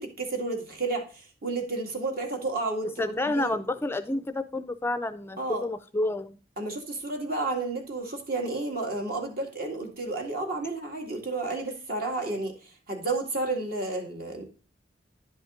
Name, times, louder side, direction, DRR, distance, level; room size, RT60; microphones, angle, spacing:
voice 1, 0.0-2.9 3.3-3.6 5.4-5.7 6.6-14.4, right 2 dB, 55° right, 2.0 m, -31 dB
voice 2, 3.0-6.4, left 2 dB, 15° left, 0.4 m, -29 dB
10.5 x 5.3 x 3.7 m
head